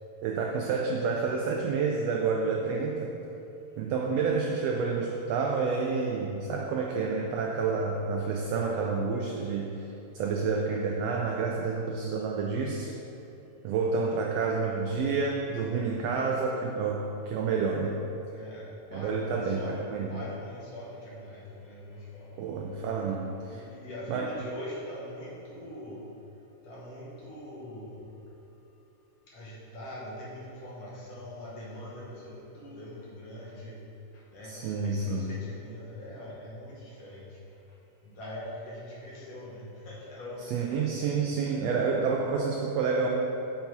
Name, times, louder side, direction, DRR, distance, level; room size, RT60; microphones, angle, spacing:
voice 1, 0.2-3.1 3.8-9.8 10.1-12.9 13.6-18.0 18.9-20.2 22.4-23.6 24.1-24.4 34.4-35.3 40.5-43.1, right 4 dB, 80° right, 0 dB, 1.4 m, -29 dB
voice 2, 18.3-19.8 20.1-22.4 23.5-26.0 26.6-28.1 29.3-33.8 34.1-37.4 38.0-40.9, left 1 dB, 60° left, -6 dB, 2.1 m, -43 dB
6.8 x 4.5 x 4.5 m, 3.0 s
omnidirectional pair, 3.3 m